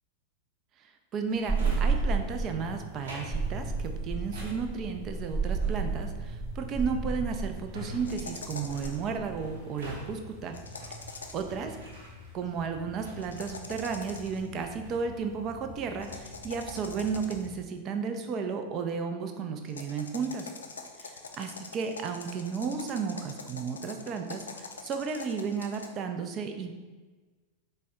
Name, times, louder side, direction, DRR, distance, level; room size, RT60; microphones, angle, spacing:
voice 1, 1.1-10.6 11.3-11.7 12.3-20.5 21.0-21.1 21.4-26.7, right 5 dB, 35° right, 6 dB, 0.4 m, -33 dB
Drawer open or close, 1.3-12.6 13.0-14.3 14.6-15.1, right 1 dB, 65° right, 0.9 m, -46 dB
sound 1, 1.5-17.6, right 4 dB, ahead, 0.9 m, -35 dB
sound 2, 8.0-9.1 10.5-11.5 13.2-14.5 16.0-17.6 19.7-25.9, left 4 dB, 70° left, 0.3 m, -44 dB
4.2 x 2.1 x 3.6 m, 1.3 s
figure-of-eight pair, 90°, 0 cm